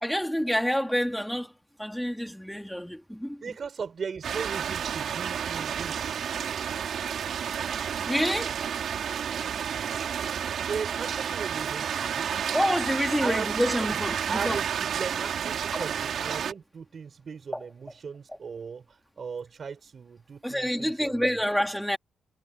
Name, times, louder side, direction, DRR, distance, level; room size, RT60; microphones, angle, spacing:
voice 1, 0.0-1.5 1.8-3.5 8.0-8.7 12.5-14.6 15.7-15.8 17.5-17.6 20.4-22.0, equal, ahead, 2.7 m, -28 dB
voice 2, 3.4-6.3 10.7-12.3 13.2-13.5 13.8-14.0 14.3-18.8 19.2-21.4, right 6 dB, 50° right, 4.7 m, -37 dB
sound 1, 4.2-16.5, right 8 dB, 70° right, 4.1 m, -31 dB
cardioid pair, 70°, 0 cm